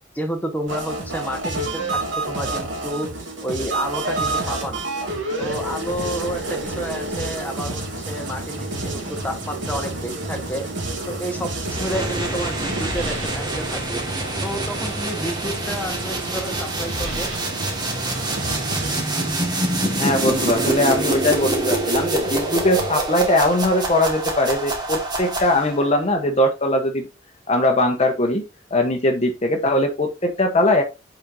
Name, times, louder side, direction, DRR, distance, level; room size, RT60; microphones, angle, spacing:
voice 1, 0.1-3.1 3.4-4.8 5.4-10.6 11.1-14.0 14.4-17.3, equal, 10° left, 3 dB, 1.3 m, -30 dB
sound 1, 0.7-19.3, right 2 dB, 80° right, 2.9 m, -30 dB
sound 2, 7.8-22.9, right 1 dB, 40° right, 2.9 m, -37 dB
sound 3, 11.6-25.9, right 2 dB, 25° right, 1.8 m, -26 dB
voice 2, 19.9-27.1 27.5-28.4 28.7-30.8, left 1 dB, 35° left, 3 dB, 1.0 m, -20 dB
7.5 x 5.2 x 2.7 m, 0.26 s
head